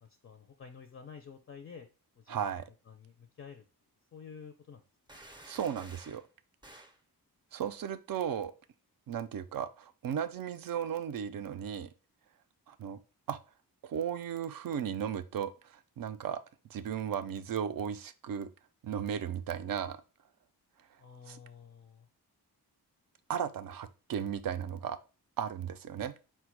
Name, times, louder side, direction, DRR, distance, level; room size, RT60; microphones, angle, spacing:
voice 1, 0.0-1.9 2.2-2.5 2.9-3.6 4.1-4.8 5.1-5.2 21.0-22.1, left 6 dB, 35° left, 5 dB, 0.4 m, -50 dB
voice 2, 2.3-2.7 5.5-6.2 7.5-8.5 9.1-11.9 12.7-13.0 13.3-13.4 13.8-16.4 16.7-18.5 18.8-20.0 21.3-21.4 23.3-25.0 25.4-26.1, right 8 dB, 65° right, 11 dB, 0.5 m, -35 dB
sound 1, 5.1-6.2 6.6-7.0, right 1 dB, 10° right, 0.5 m, -52 dB
4.3 x 2.2 x 4.5 m, 0.32 s
wide cardioid pair, 130°, 38 cm